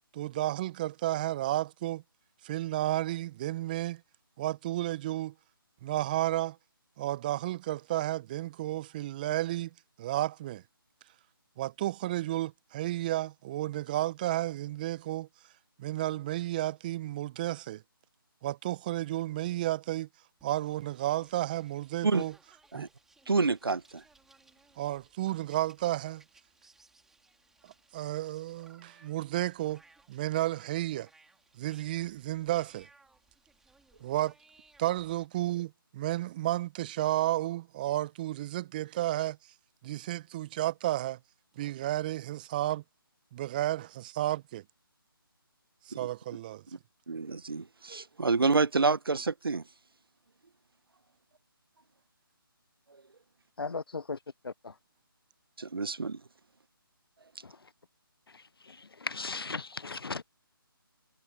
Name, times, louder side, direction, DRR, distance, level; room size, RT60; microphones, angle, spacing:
voice 1, 0.1-2.0 2.4-4.0 4.4-5.3 5.8-6.6 7.0-9.7 10.0-10.6 11.6-15.3 15.8-17.8 18.4-20.1 20.4-22.3 22.7-22.9 24.8-26.2 27.9-29.8 30.1-31.1 31.6-32.9 34.0-34.3 34.8-39.4 39.8-41.2 41.6-42.8 43.3-44.6 45.9-46.6, right 15 dB, 20° right, 0.9 m, -32 dB
sound 1, 20.4-35.3, right 3 dB, 5° right, 4.5 m, -63 dB
voice 2, 23.3-24.0 47.1-49.6 55.6-56.2, right 4 dB, 75° right, 1.1 m, -28 dB
voice 3, 53.6-54.2 54.4-54.7 57.4-57.7 58.3-60.2, left 4 dB, 75° left, 0.7 m, -38 dB
figure-of-eight pair, 155°, 12 cm